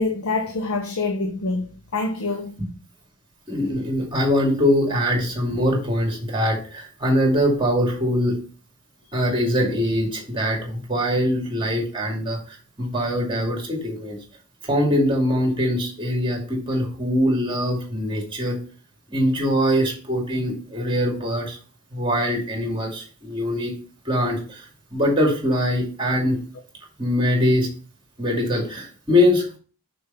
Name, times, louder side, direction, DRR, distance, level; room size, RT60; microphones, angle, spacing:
voice 1, 0.0-2.6, left 3 dB, 70° left, 0.9 m, -26 dB
voice 2, 3.5-8.4 9.1-14.2 14.6-18.6 19.1-21.6 21.9-23.7 24.0-26.4 27.0-27.7 28.2-29.5, equal, 25° right, 2.4 m, -22 dB
6.7 x 5.3 x 5.7 m
head